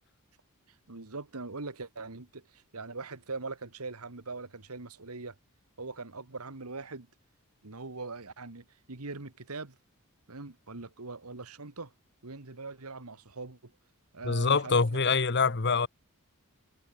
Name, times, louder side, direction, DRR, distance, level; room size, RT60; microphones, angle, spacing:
voice 1, 0.9-5.4 5.8-7.1 7.6-9.8 10.3-11.9 12.2-13.7 14.1-15.0, right 3 dB, 90° right, 1.9 m, -41 dB
voice 2, 14.2-15.9, left 4 dB, 50° left, 1.1 m, -25 dB
head